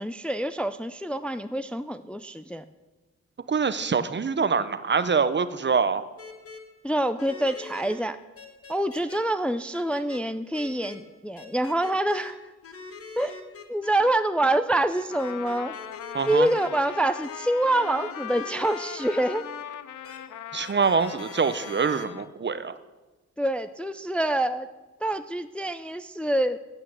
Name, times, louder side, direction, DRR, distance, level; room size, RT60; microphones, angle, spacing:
voice 1, 0.0-2.6 6.8-8.2 8.7-12.5 13.2-13.4 13.7-15.8 16.3-19.4 23.4-24.7 25.0-26.6, right 1 dB, 5° left, 10 dB, 0.4 m, -26 dB
voice 2, 3.5-6.1 16.1-16.5 20.5-22.7, right 5 dB, 40° right, 14 dB, 0.6 m, -24 dB
sound 1, 6.2-6.6 7.2-8.0 8.4-9.2 9.7-10.2 10.5-11.0 11.4-12.3 12.6-14.1 14.9-19.6 20.0-20.2 20.6-22.0, left 4 dB, 50° left, 1.7 m, -43 dB
Trumpet, 15.1-22.3, left 11 dB, 80° left, 0.5 m, -40 dB
8.8 x 8.3 x 7.7 m, 1.2 s
cardioid pair, 80°, 30 cm